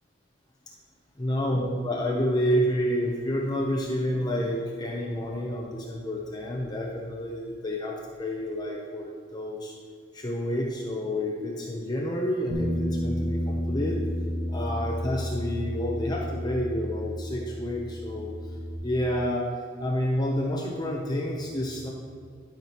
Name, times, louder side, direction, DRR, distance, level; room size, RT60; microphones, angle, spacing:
voice 1, 1.2-9.7 10.1-14.0 14.5-18.3 18.8-19.5 19.8-21.9, equal, 20° left, -1 dB, 0.7 m, -29 dB
Bass guitar, 12.5-18.8, equal, 65° right, 1.2 m, -31 dB
12.0 x 5.9 x 3.0 m, 2.1 s
head